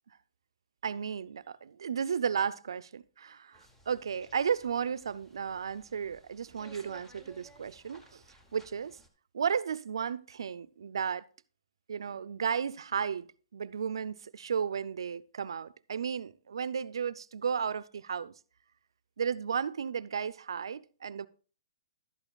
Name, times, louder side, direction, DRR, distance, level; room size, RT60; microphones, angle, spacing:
voice 1, 0.8-8.2 8.5-9.0 9.3-11.2 11.9-13.3 13.5-18.3 19.2-21.3, right 7 dB, 85° right, 0.4 m, -34 dB
sound 1, 3.5-9.1, right 1 dB, 10° left, 0.8 m, -58 dB
11.5 x 8.8 x 2.3 m
hypercardioid pair, 155°, 2 cm